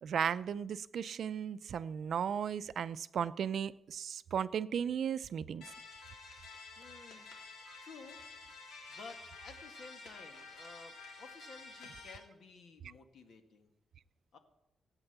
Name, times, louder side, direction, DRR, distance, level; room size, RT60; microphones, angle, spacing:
voice 1, 0.0-5.6 7.7-7.8, right 8 dB, 55° right, 14 dB, 0.5 m, -35 dB
sound 1, 5.6-12.2, left 3 dB, 80° left, 3.5 m, -51 dB
voice 2, 6.8-7.3 7.8-8.2 8.9-13.7 14.3-14.4, left 4 dB, 60° left, 6 dB, 1.9 m, -54 dB
15.5 x 9.0 x 8.1 m, 0.87 s
wide cardioid pair, 160°, 0 cm